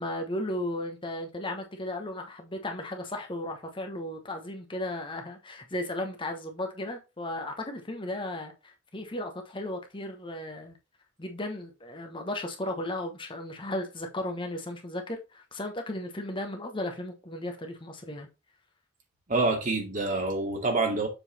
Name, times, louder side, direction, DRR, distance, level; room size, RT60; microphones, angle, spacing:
voice 1, 0.0-10.8 11.2-18.3, left 1 dB, 25° left, 1.0 m, -35 dB
voice 2, 19.3-21.1, right 3 dB, 40° right, 2.2 m, -27 dB
7.0 x 4.0 x 4.1 m
head